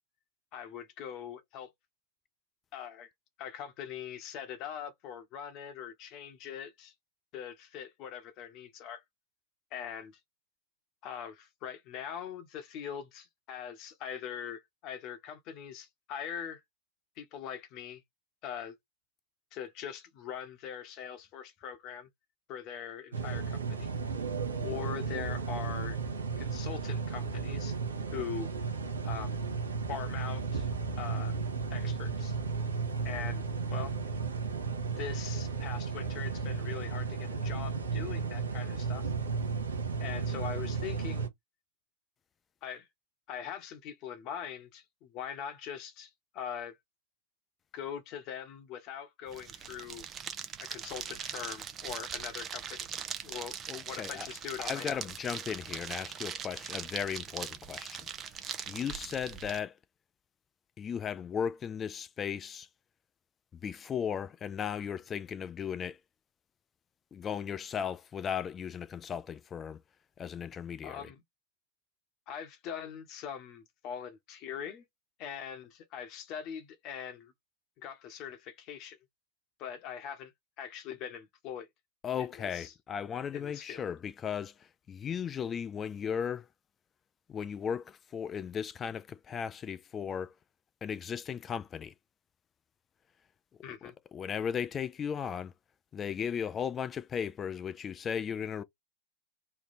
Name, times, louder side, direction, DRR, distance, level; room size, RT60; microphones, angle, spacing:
voice 1, 0.5-1.7 2.7-3.1 3.4-6.9 7.3-9.0 9.7-10.2 11.0-16.6 17.2-18.0 18.4-18.7 19.5-22.1 22.5-23.9 24.6-26.0 26.4-27.8 28.1-28.5 29.0-29.4 29.9-30.7 31.0-31.3 31.7-32.4 33.0-33.4 33.7-33.9 34.9-39.1 40.0-41.3 42.6-42.9 43.3-46.8 47.7-50.1 50.6-52.9 53.2-53.6 53.9-55.0 70.8-71.2 72.3-74.8 75.2-77.3 77.8-79.0 79.6-80.3 80.6-81.7 82.2-82.7 83.3-83.8 93.6-93.9, left 8 dB, 45° left, 1.1 m, -42 dB
sound 1, 23.1-41.3, right 5 dB, 85° right, 0.9 m, -34 dB
sound 2, 49.3-59.6, right 8 dB, 30° right, 0.7 m, -41 dB
voice 2, 53.7-54.3 54.6-58.1 58.4-59.8 60.8-62.7 63.5-66.0 67.1-69.8 70.2-71.1 82.0-86.5 87.3-90.3 90.8-91.9 93.8-95.5 95.9-98.6, left 7 dB, 25° left, 0.5 m, -36 dB
3.4 x 2.3 x 4.1 m
hypercardioid pair, 100°, 0 cm